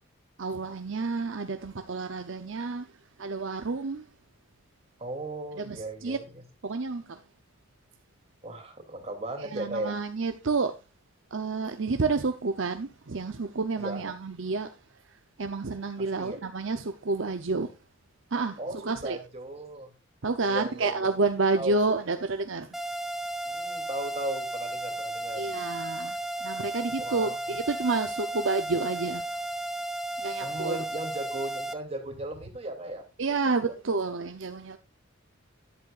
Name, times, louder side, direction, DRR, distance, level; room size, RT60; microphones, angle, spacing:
voice 1, 0.4-2.9 3.2-4.1 5.6-6.2 6.6-7.2 9.4-10.7 11.3-14.7 15.4-17.7 18.3-19.2 20.2-22.7 25.3-29.2 30.2-30.8 33.2-34.8, right 3 dB, 65° right, 0.8 m, -29 dB
voice 2, 5.0-6.4 8.4-10.0 13.8-14.0 16.0-16.4 18.6-19.9 20.4-21.1 21.6-22.0 23.5-25.5 27.0-27.4 30.4-33.0 33.7-33.8, right 1 dB, 30° right, 3.0 m, -37 dB
sound 1, 22.7-31.7, right 1 dB, ahead, 1.0 m, -34 dB
12.5 x 11.5 x 2.5 m
head